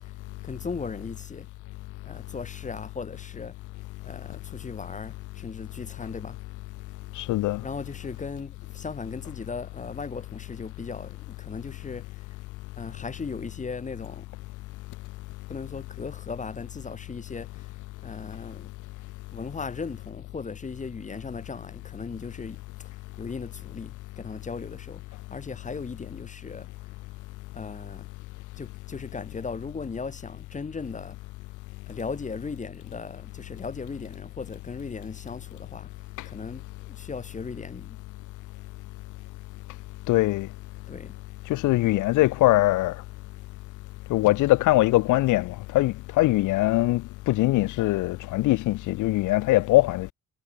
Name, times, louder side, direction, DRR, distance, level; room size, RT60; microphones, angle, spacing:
voice 1, 0.4-1.5 2.0-3.6 4.0-6.4 7.6-12.3 12.8-14.3 15.5-17.7 18.0-18.7 19.3-22.9 23.2-26.7 27.5-28.1 28.6-31.2 31.9-35.9 36.2-38.0 40.9-41.1, left 4 dB, 25° left, 1.5 m, -37 dB
voice 2, 7.2-7.6 40.1-40.5 41.5-43.0 44.1-47.0 47.3-50.1, left 18 dB, 80° left, 0.6 m, -22 dB
cardioid pair, 90°, 30 cm